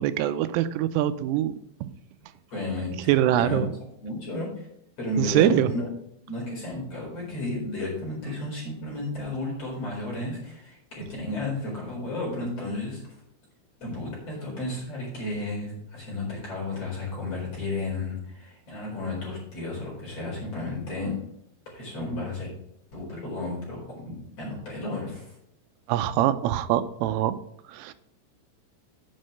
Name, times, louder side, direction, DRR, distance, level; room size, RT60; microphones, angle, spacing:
voice 1, 0.0-1.5 1.8-1.9 3.1-3.7 5.2-5.7 25.9-27.4 27.7-27.9, right 12 dB, 90° right, 12 dB, 3.2 m, -23 dB
voice 2, 2.5-3.6 4.0-4.7 5.0-5.9 6.3-13.1 13.8-21.2 21.7-22.5 22.9-25.4, left 2 dB, 30° left, -4 dB, 5.1 m, -33 dB
8.8 x 6.4 x 6.3 m, 0.74 s
omnidirectional pair, 5.7 m